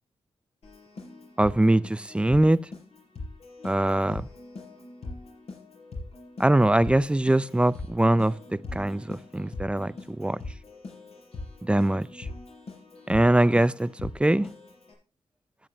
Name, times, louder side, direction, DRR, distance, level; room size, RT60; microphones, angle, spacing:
Keyboard (musical), 0.6-14.9, left 2 dB, 75° left, 5.1 m, -42 dB
voice 1, 1.4-2.6 3.6-4.2 6.4-8.3 8.7-10.4 11.7-12.1 13.1-14.5, right 1 dB, 10° right, 0.4 m, -22 dB
13.5 x 9.2 x 2.9 m
wide cardioid pair, 85°, 11 cm